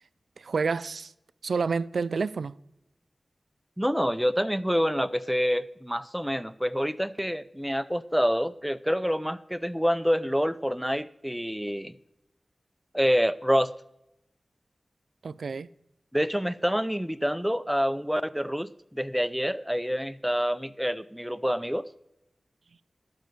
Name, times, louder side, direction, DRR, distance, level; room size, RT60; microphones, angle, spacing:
voice 1, 0.4-1.1 1.4-2.5 15.2-15.7, right 4 dB, 85° right, 0.3 m, -29 dB
voice 2, 3.8-11.9 12.9-13.7 16.1-21.9, equal, 5° right, 0.5 m, -27 dB
12.5 x 5.2 x 7.7 m
cardioid pair, 45°, 0 cm